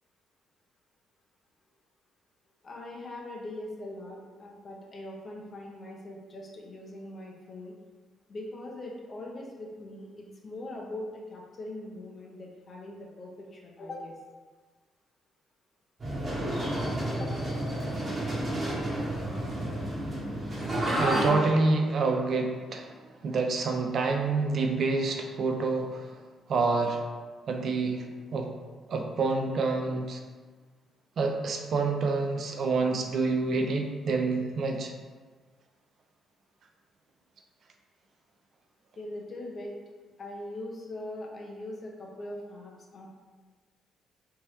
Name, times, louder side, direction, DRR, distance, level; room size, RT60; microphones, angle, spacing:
voice 1, 2.6-7.7 8.3-14.1 17.1-17.4 39.0-39.8 40.2-43.1, left 1 dB, 40° left, -1 dB, 0.7 m, -41 dB
sound 1, 16.0-21.3, right 1 dB, 35° right, 1.2 m, -30 dB
voice 2, 21.0-22.9 23.2-26.1 26.5-27.0 27.5-28.5 28.9-30.2 31.2-34.9, right 3 dB, 55° right, 3 dB, 0.4 m, -27 dB
3.5 x 2.8 x 3.1 m, 1.4 s
cardioid pair, 90°, 0 cm